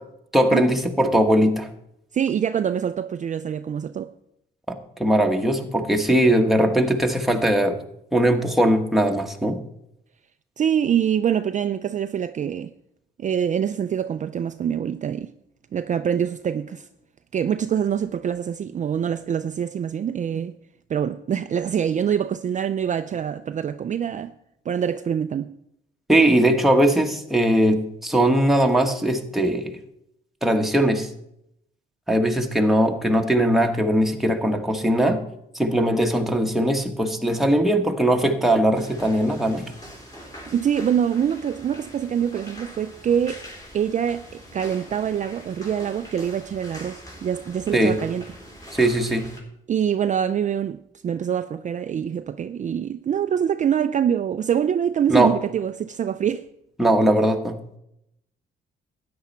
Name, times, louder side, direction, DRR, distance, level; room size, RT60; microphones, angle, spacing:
voice 1, 0.3-1.7 4.7-7.8 8.1-9.6 26.1-29.7 30.4-31.1 32.1-35.2 35.5-39.6 47.7-48.0 48.7-49.3 55.1-55.3 56.8-57.6, right 1 dB, ahead, 1.4 m, -20 dB
voice 2, 2.1-4.1 10.6-12.7 13.2-15.3 15.7-16.9 17.3-20.6 20.9-24.3 24.7-25.6 40.5-43.4 43.7-48.3 49.7-56.5, right 8 dB, 40° right, 0.4 m, -25 dB
sound 1, 38.7-49.4, equal, 20° left, 3.7 m, -43 dB
13.0 x 9.6 x 4.4 m
cardioid pair, 90°, 20 cm